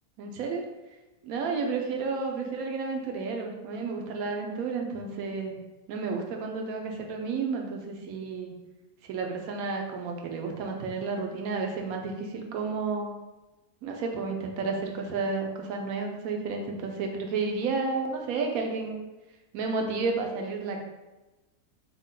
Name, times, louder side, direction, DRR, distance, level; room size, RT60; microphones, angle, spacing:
voice 1, 0.2-0.7 1.2-5.6 5.9-8.5 9.1-13.1 13.8-19.0 19.5-20.8, right 4 dB, 70° right, 2 dB, 1.0 m, -31 dB
3.5 x 2.3 x 3.6 m, 1.1 s
omnidirectional pair, 1.6 m